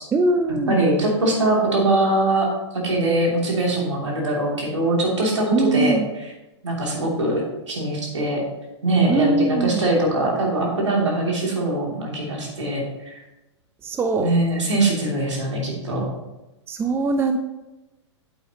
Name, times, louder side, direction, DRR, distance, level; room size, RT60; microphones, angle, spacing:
voice 1, 0.1-0.8 5.5-6.1 9.1-9.9 13.8-14.3 16.7-17.4, right 3 dB, 15° right, 6 dB, 0.6 m, -21 dB
voice 2, 0.7-2.4 2.7-6.3 6.6-8.4 8.8-13.2 14.2-16.0, right 2 dB, 75° right, -2 dB, 3.0 m, -22 dB
8.9 x 8.0 x 3.0 m, 1.0 s
figure-of-eight pair, 105°, 15 cm